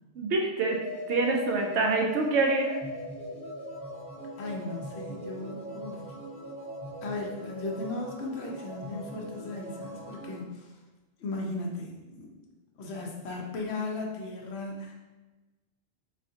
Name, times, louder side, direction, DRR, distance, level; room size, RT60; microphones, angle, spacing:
voice 1, 0.2-0.8 1.1-2.8, right 3 dB, 75° right, 2 dB, 0.9 m, -26 dB
sound 1, 0.6-10.4, left 1 dB, 20° left, 1.2 m, -40 dB
voice 2, 4.4-6.1 7.0-10.8 11.2-12.3 12.8-14.9, left 2 dB, 70° left, 0 dB, 0.9 m, -36 dB
4.0 x 2.6 x 2.7 m, 1.2 s
omnidirectional pair, 1.2 m